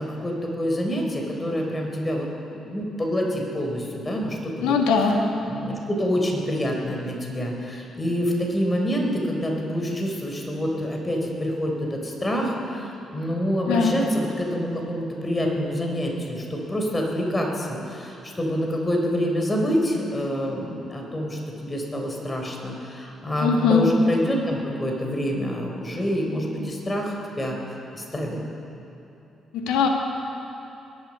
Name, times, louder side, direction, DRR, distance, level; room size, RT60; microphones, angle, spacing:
voice 1, 0.0-2.3 2.6-4.8 5.5-27.6 27.9-28.4, equal, 25° left, 0 dB, 3.8 m, -27 dB
voice 2, 4.6-5.2 13.7-14.0 23.4-23.9 29.5-29.9, left 5 dB, 75° left, 3 dB, 1.5 m, -20 dB
21.0 x 11.5 x 5.4 m, 2.9 s
hypercardioid pair, 45°, 0 cm